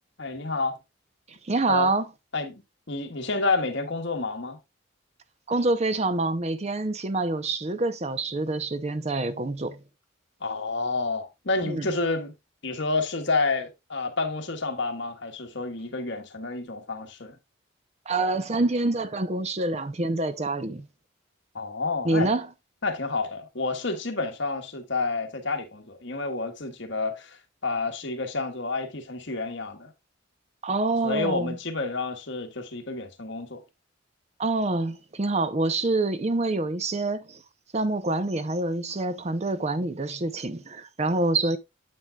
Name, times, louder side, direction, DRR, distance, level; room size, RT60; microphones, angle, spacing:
voice 1, 0.2-0.8 1.7-1.9 2.3-4.6 10.4-12.3 12.6-17.4 21.5-22.3 22.8-29.9 31.0-33.6, left 3 dB, 60° left, 1.5 m, -29 dB
voice 2, 1.4-2.1 5.5-9.8 11.7-11.9 18.1-20.8 22.0-22.5 30.6-31.6 34.4-37.4 37.7-41.6, right 2 dB, 30° right, 0.6 m, -26 dB
9.0 x 7.8 x 2.3 m
head